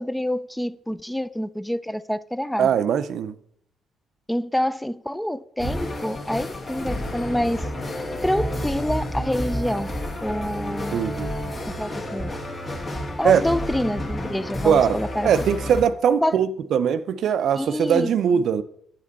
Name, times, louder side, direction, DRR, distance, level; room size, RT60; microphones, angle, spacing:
voice 1, 0.0-2.7 4.3-7.7 8.2-9.9 10.2-11.0 11.8-12.3 13.2-15.3 16.2-16.4 17.6-18.4, left 1 dB, 5° left, 0.3 m, -27 dB
voice 2, 2.6-3.4 10.9-11.3 13.2-13.4 14.6-15.0 15.2-18.6, right 8 dB, 70° right, 0.4 m, -21 dB
sound 1, 5.6-15.8, left 1 dB, 35° left, 1.6 m, -30 dB
sound 2, 5.7-11.7, left 3 dB, 50° left, 1.4 m, -41 dB
7.8 x 5.1 x 4.0 m
cardioid pair, 90°, 0 cm